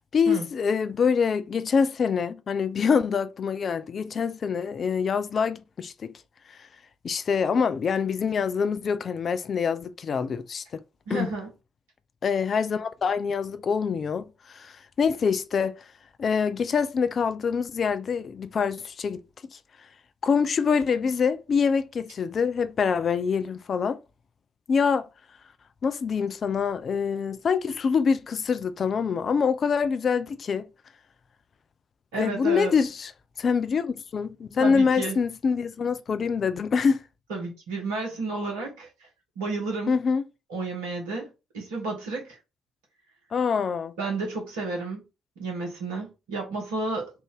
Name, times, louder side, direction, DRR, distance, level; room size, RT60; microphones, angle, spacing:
voice 1, 0.1-6.1 6.5-6.7 7.0-10.8 11.1-11.3 12.2-15.7 16.2-19.2 19.5-19.6 20.2-24.0 24.7-25.1 25.8-30.7 32.2-33.1 33.4-37.0 39.9-40.2 43.3-43.9, left 6 dB, 45° left, 0.3 m, -25 dB
voice 2, 11.1-11.5 32.1-32.7 34.6-35.2 37.3-39.1 39.3-39.9 40.5-42.4 44.0-45.0 45.4-47.1, right 3 dB, 70° right, 1.3 m, -31 dB
3.5 x 2.5 x 3.4 m
figure-of-eight pair, 40°, 0 cm